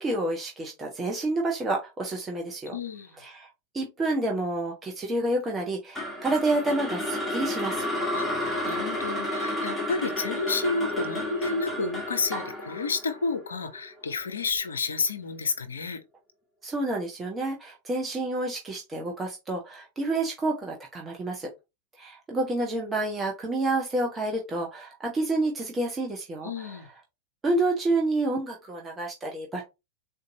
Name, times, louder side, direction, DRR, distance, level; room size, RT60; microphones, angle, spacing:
voice 1, 0.0-2.8 3.2-3.5 3.7-7.8 16.6-21.5 22.0-26.8 27.4-29.6, right 2 dB, 20° right, 0.7 m, -29 dB
voice 2, 2.7-3.2 8.1-16.0 26.4-26.9, left 4 dB, 70° left, 0.6 m, -31 dB
sound 1, 5.9-14.1, left 1 dB, 5° left, 1.3 m, -31 dB
3.9 x 2.5 x 2.7 m
figure-of-eight pair, 90°, 0 cm